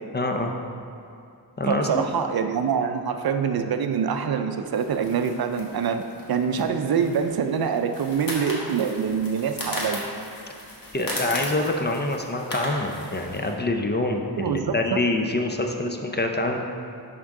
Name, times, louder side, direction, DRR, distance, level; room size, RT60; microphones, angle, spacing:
voice 1, 0.1-0.5 1.6-2.1 10.9-16.6, left 2 dB, 25° left, 3 dB, 0.5 m, -26 dB
voice 2, 1.7-6.0 6.3-10.0 14.4-15.0, right 6 dB, 65° right, 7 dB, 0.5 m, -25 dB
sound 1, 4.7-13.5, left 1 dB, 55° left, 1.5 m, -36 dB
11.0 x 3.7 x 3.6 m, 2.6 s
wide cardioid pair, 80°, 41 cm